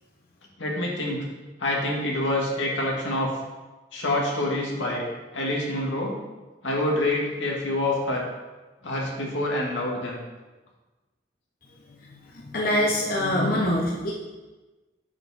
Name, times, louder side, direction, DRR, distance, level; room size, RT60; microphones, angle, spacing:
voice 1, 0.6-1.2 1.6-3.3 3.9-5.0 5.3-6.1 6.6-8.2 8.8-10.2, left 1 dB, 80° left, -2 dB, 2.2 m, -26 dB
voice 2, 12.3-14.1, left 1 dB, 50° left, -3 dB, 1.1 m, -24 dB
8.6 x 7.5 x 4.3 m, 1.2 s
head